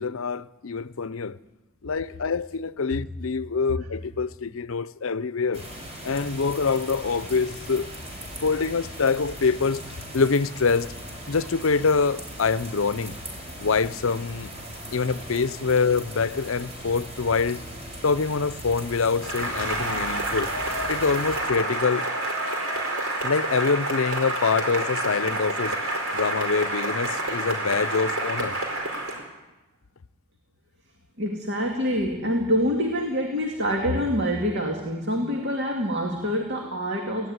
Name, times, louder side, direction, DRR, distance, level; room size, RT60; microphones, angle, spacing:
voice 1, 0.0-1.4 1.8-5.6 6.0-7.9 8.4-10.9 11.3-13.2 13.6-14.5 14.9-17.6 18.0-20.5 20.9-22.0 23.2-25.8 26.1-28.5, left 4 dB, 70° left, 0.6 m, -25 dB
sound 1, 5.5-21.4, equal, 30° right, 5.4 m, -39 dB
Cheering / Applause, 19.2-29.3, right 1 dB, 75° right, 4.7 m, -28 dB
voice 2, 31.2-37.3, equal, 55° right, 2.4 m, -26 dB
19.0 x 16.5 x 9.6 m
head